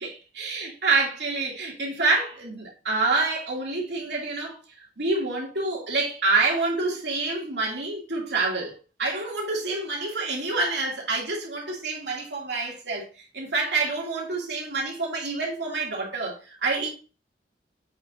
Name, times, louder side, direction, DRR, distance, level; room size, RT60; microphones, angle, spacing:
voice 1, 0.0-4.6 5.0-16.9, right 3 dB, 75° right, 2.5 m, -27 dB
7.9 x 5.9 x 2.6 m
head